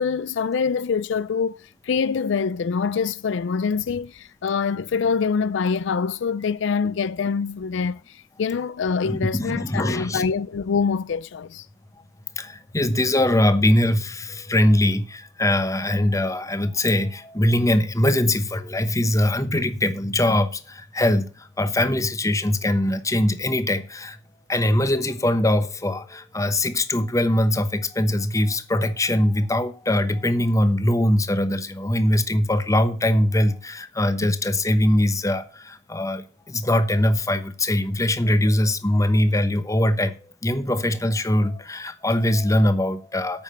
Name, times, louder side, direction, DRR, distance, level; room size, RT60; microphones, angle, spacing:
voice 1, 0.0-11.7 34.2-34.3, left 5 dB, 65° left, 0.4 m, -25 dB
voice 2, 9.0-10.3 12.4-24.2 24.5-43.4, left 1 dB, 15° left, 0.9 m, -22 dB
8.8 x 6.5 x 7.5 m
head